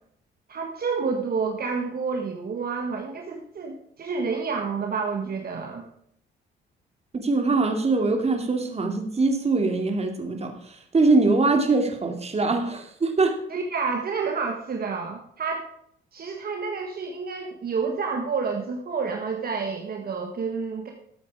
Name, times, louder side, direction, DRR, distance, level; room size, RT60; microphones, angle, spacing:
voice 1, 0.5-5.8 13.5-15.6 16.1-20.9, right 5 dB, 50° right, 2 dB, 1.8 m, -29 dB
voice 2, 7.1-13.4, right 3 dB, 30° right, 5 dB, 2.5 m, -23 dB
13.5 x 8.4 x 4.8 m, 0.68 s
cardioid pair, 90°, 20 cm